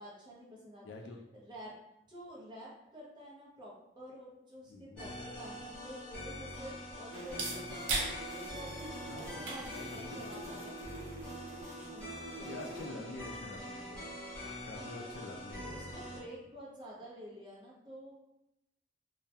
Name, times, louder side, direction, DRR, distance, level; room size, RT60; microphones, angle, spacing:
voice 1, 0.0-0.9 1.3-1.8 2.1-10.8 11.8-13.5 14.8-15.1 15.7-18.1, equal, 25° right, -5 dB, 0.6 m, -50 dB
voice 2, 0.8-1.2 4.7-5.2 5.5-5.7 9.1-10.6 12.4-14.1 14.6-16.2, left 2 dB, 70° left, 2 dB, 0.3 m, -47 dB
sound 1, 4.9-12.9, right 3 dB, 80° right, 0.5 m, -43 dB
sound 2, 5.0-16.2, left 1 dB, 5° left, 0.8 m, -44 dB
sound 3, 7.1-12.9, right 1 dB, 55° right, 0.8 m, -48 dB
2.2 x 2.0 x 2.7 m, 0.88 s
head